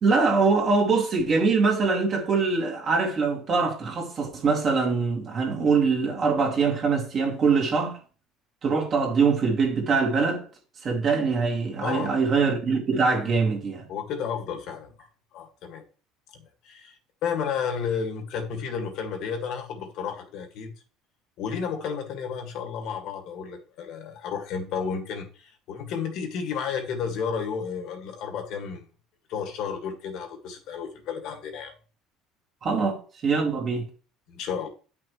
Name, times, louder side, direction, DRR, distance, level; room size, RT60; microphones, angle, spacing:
voice 1, 0.0-8.0 8.6-10.4 10.8-13.9 32.6-33.8, right 4 dB, 35° right, 2.5 m, -23 dB
voice 2, 13.9-15.8 16.3-20.7 21.4-28.9 29.3-31.7 34.3-34.7, left 6 dB, 60° left, 2.0 m, -32 dB
9.9 x 6.0 x 3.2 m
cardioid pair, 145°, 0 cm